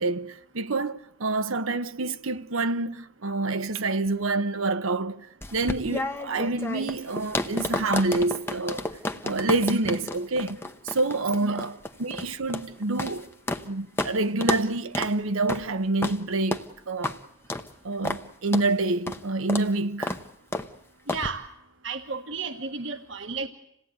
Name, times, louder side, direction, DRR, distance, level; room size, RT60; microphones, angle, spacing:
voice 1, 0.0-5.3 5.5-8.8 9.2-10.6 10.8-13.3 13.6-17.2 17.8-20.2, right 2 dB, 80° right, 1.0 m, -27 dB
sound 1, 5.4-13.7 14.0-14.1 14.4-14.7 14.9-15.1 15.5-15.7 16.0-16.2 16.5-16.7 17.0-17.2 17.5-17.7 18.0-18.2 18.5-18.7 19.1-19.2 19.5-19.7 20.0-20.2 20.5-20.7 21.1-21.3, left 2 dB, 10° left, 0.8 m, -31 dB
voice 2, 21.1-21.4 21.8-23.5, right 4 dB, 65° right, 1.5 m, -33 dB
27.0 x 17.5 x 9.4 m
head